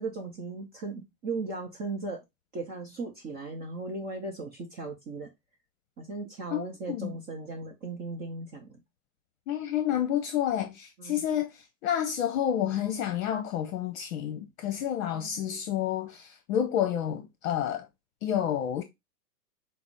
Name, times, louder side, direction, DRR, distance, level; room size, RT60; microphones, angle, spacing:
voice 1, 0.0-2.2 2.5-5.3 6.0-8.8 11.0-11.2 15.1-15.6, right 3 dB, 20° right, 0.5 m, -37 dB
voice 2, 6.5-7.2 9.5-17.9 18.2-18.8, left 10 dB, 55° left, 0.8 m, -29 dB
5.9 x 2.0 x 3.9 m
hypercardioid pair, 130°, 48 cm